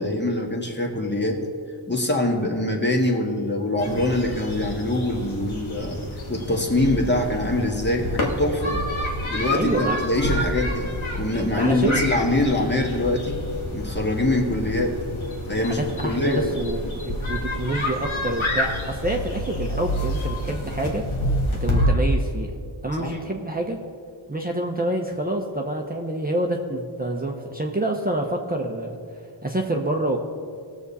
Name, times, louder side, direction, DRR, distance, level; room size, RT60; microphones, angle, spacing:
voice 1, 0.0-1.4 1.9-6.0 6.3-8.8 9.3-13.4 13.7-15.0 15.5-16.6 23.0-23.2, left 1 dB, 20° left, 1 dB, 1.6 m, -24 dB
sound 1, 3.8-21.9, left 1 dB, 75° left, 1.9 m, -28 dB
voice 2, 9.5-10.0 11.5-12.0 15.6-21.1 21.5-22.6 22.8-23.8 24.3-29.0 29.4-30.2, right 1 dB, 20° right, 0 dB, 0.8 m, -27 dB
18.5 x 7.2 x 4.1 m, 2.4 s
wide cardioid pair, 95°, 48 cm